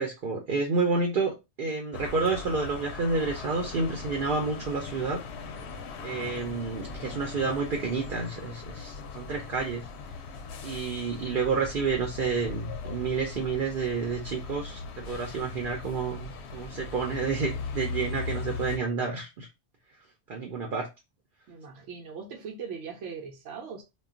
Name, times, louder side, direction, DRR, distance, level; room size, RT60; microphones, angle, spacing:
voice 1, 0.0-5.2 6.0-9.8 10.6-19.5 20.3-20.9, right 4 dB, 55° right, 0.7 m, -30 dB
sound 1, 1.9-18.8, left 4 dB, 70° left, 0.8 m, -39 dB
voice 2, 21.5-23.8, right 6 dB, 85° right, 0.9 m, -40 dB
2.3 x 2.2 x 3.6 m
omnidirectional pair, 1.2 m